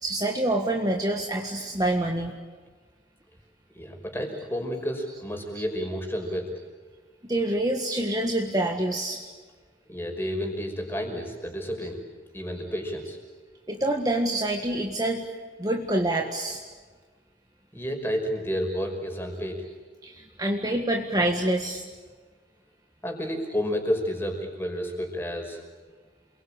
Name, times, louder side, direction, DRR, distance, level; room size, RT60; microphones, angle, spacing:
voice 1, 0.0-2.3 5.1-5.2 5.6-5.8 7.3-9.3 11.8-11.9 13.7-15.3 15.6-16.6 20.0-21.8, right 1 dB, 20° right, 1 dB, 1.7 m, -27 dB
voice 2, 3.7-6.6 9.9-12.0 12.3-13.2 17.7-19.7 23.0-25.7, equal, 10° left, 3 dB, 5.4 m, -31 dB
28.5 x 23.0 x 8.9 m, 1.4 s
head